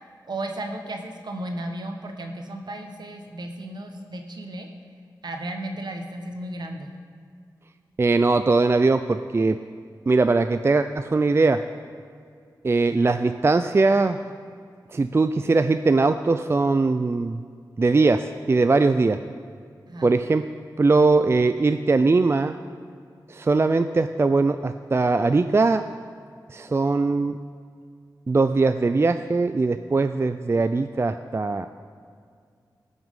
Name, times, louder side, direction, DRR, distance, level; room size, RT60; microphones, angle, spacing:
voice 1, 0.3-4.7 5.2-6.9 19.9-20.1, right 1 dB, 65° right, 4 dB, 1.4 m, -34 dB
voice 2, 8.0-9.6 10.1-11.6 12.6-14.2 14.9-17.4 17.8-19.2 20.0-20.4 20.8-22.6 23.3-25.8 26.5-27.4 28.3-31.7, right 3 dB, 35° right, 9 dB, 0.4 m, -20 dB
17.5 x 6.2 x 5.5 m, 2.2 s
wide cardioid pair, 75°, 8 cm